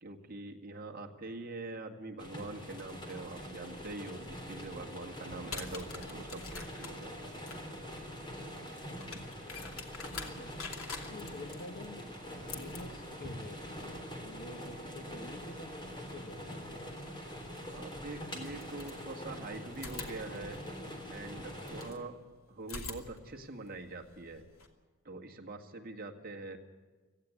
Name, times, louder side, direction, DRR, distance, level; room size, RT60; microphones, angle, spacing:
voice 1, 0.0-7.3 17.7-20.6 21.1-22.2 22.5-24.4 25.0-26.6, right 2 dB, 40° right, 2 dB, 2.0 m, -44 dB
sound 1, 2.2-21.9, equal, 20° left, 3.5 m, -44 dB
sound 2, 5.3-16.1 17.6-17.7 18.4-19.4 19.7-22.0 22.6-24.7, left 4 dB, 75° left, 2.7 m, -47 dB
voice 2, 11.1-12.2 12.5-14.0 14.2-16.9, left 2 dB, 45° left, 7 dB, 1.4 m, -48 dB
18.0 x 15.0 x 9.6 m, 1.4 s
head